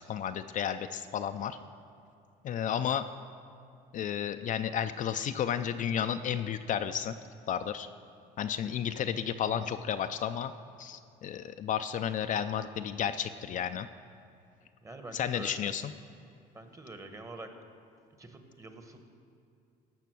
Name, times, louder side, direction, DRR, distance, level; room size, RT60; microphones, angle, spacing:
voice 1, 0.1-1.6 2.4-3.0 3.9-7.2 7.5-7.9 8.4-10.5 10.8-13.9 15.1-15.9, left 9 dB, 50° left, 9 dB, 0.4 m, -32 dB
voice 2, 14.8-15.7 16.5-17.5 18.2-19.1, right 2 dB, 20° right, 6 dB, 1.1 m, -46 dB
16.0 x 5.8 x 6.1 m, 2.4 s
cardioid pair, 110°, 17 cm